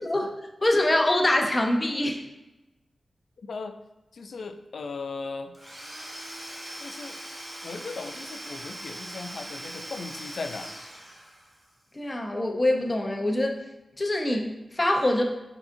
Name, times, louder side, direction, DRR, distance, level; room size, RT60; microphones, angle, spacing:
voice 1, 0.0-2.2 11.9-13.6 14.0-15.2, left 1 dB, 25° left, 3 dB, 0.6 m, -24 dB
voice 2, 3.4-3.8 4.1-5.6 6.8-7.2 7.6-10.7, left 4 dB, 70° left, 8 dB, 0.3 m, -37 dB
Domestic sounds home sounds / Tools, 5.5-11.7, right 1 dB, 15° right, 1.0 m, -41 dB
4.7 x 3.8 x 2.6 m, 1.0 s
wide cardioid pair, 90°, 0 cm